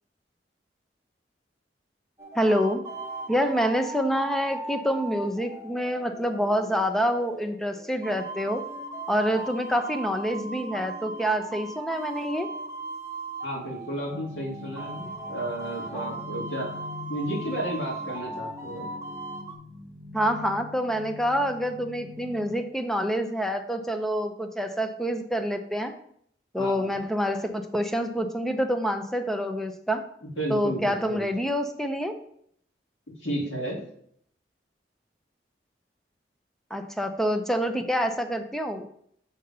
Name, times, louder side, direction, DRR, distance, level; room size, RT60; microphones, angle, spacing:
sound 1, 2.2-19.6, right 2 dB, 15° right, 1.0 m, -38 dB
voice 1, 2.4-2.8 3.3-8.6 9.1-12.5 20.1-25.9 26.5-30.0 30.5-32.2 36.7-38.9, equal, ahead, 6 dB, 0.5 m, -27 dB
voice 2, 13.4-16.7 17.1-18.9 26.6-27.0 30.2-31.3 33.2-33.8, right 1 dB, 80° left, -4 dB, 2.2 m, -33 dB
sound 2, 14.1-22.5, left 4 dB, 45° right, 0.9 m, -43 dB
7.1 x 3.9 x 5.3 m, 0.67 s
head